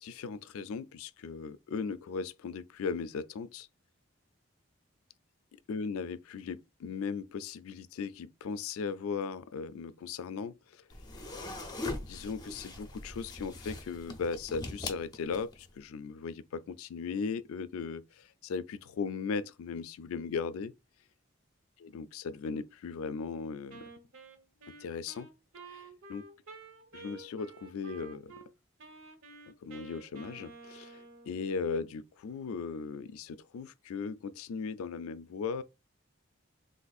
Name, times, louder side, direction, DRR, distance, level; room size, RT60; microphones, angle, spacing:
voice 1, 0.0-3.7 5.7-10.8 12.0-20.7 21.8-23.8 24.8-25.3 25.7-26.3 26.9-28.3 29.5-35.6, left 5 dB, 85° left, 0.3 m, -37 dB
sound 1, 10.9-15.7, left 2 dB, 20° left, 0.5 m, -41 dB
Wind instrument woodwind instrument, 23.7-28.5 28.8-31.4, right 3 dB, 70° right, 0.7 m, -51 dB
3.7 x 2.6 x 2.3 m
head